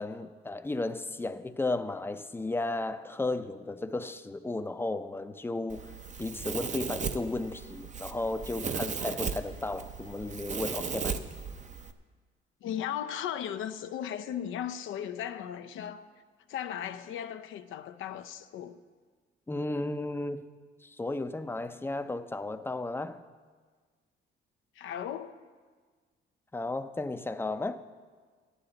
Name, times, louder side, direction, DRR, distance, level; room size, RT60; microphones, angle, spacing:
voice 1, 0.0-5.8 6.2-11.2 19.5-20.4 20.8-23.2 26.5-27.8, left 2 dB, 10° left, 0.5 m, -34 dB
Domestic sounds home sounds, 5.7-11.9, right 5 dB, 35° right, 0.7 m, -36 dB
voice 2, 12.6-16.1 16.5-18.8 24.8-25.4, left 10 dB, 80° left, 0.6 m, -36 dB
14.5 x 11.0 x 3.9 m
cardioid pair, 90°, 20 cm